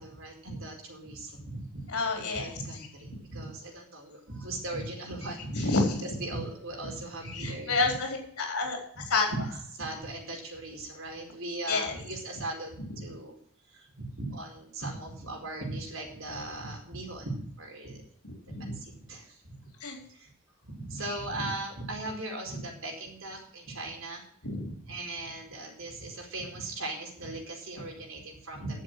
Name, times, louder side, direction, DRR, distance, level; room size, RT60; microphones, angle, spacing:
voice 1, 0.0-5.7 6.0-7.9 8.9-13.3 13.7-18.0 18.6-19.5 20.1-20.3 20.6-24.2 24.8-28.8, right 2 dB, 60° right, 0 dB, 4.6 m, -38 dB
voice 2, 1.9-2.5 5.5-6.1 7.3-8.8 9.1-9.3 11.7-12.0 18.5-18.7 19.8-20.0 24.4-24.6, left 3 dB, 80° left, 1 dB, 4.2 m, -28 dB
11.0 x 7.4 x 7.7 m, 0.62 s
head